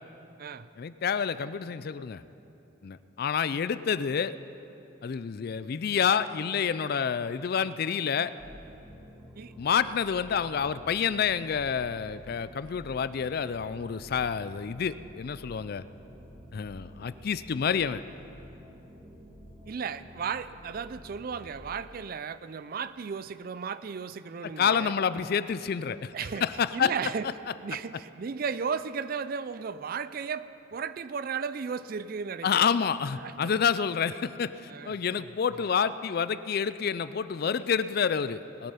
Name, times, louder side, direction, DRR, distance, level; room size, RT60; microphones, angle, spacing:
voice 1, 0.8-2.2 2.8-4.3 5.0-8.3 9.6-15.8 16.5-18.0 24.4-26.1 26.4-26.9 32.4-38.7, left 7 dB, 50° left, 15 dB, 0.4 m, -28 dB
sound 1, 8.4-21.5, equal, 10° right, 1.7 m, -50 dB
voice 2, 19.7-24.9 26.1-26.5 26.7-27.3 27.6-32.7 33.2-33.5 34.7-35.3, right 6 dB, 45° right, 15 dB, 0.4 m, -35 dB
20.0 x 8.9 x 5.7 m, 2.8 s
head